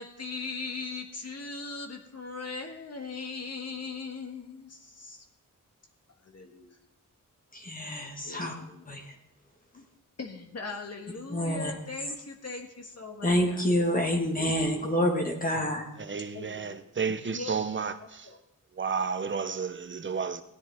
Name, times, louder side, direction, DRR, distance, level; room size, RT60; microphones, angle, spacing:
voice 1, 0.0-5.3 6.2-6.8 8.2-8.9 9.7-9.8 10.2-13.6 16.3-18.4, left 4 dB, 50° left, 1.6 m, -40 dB
voice 2, 7.5-8.5 8.9-9.1 11.3-11.7 13.2-15.8, left 1 dB, 25° left, 1.5 m, -27 dB
voice 3, 16.1-18.3 18.8-20.4, right 5 dB, 35° right, 0.7 m, -32 dB
16.5 x 10.5 x 3.5 m
wide cardioid pair, 140°, 32 cm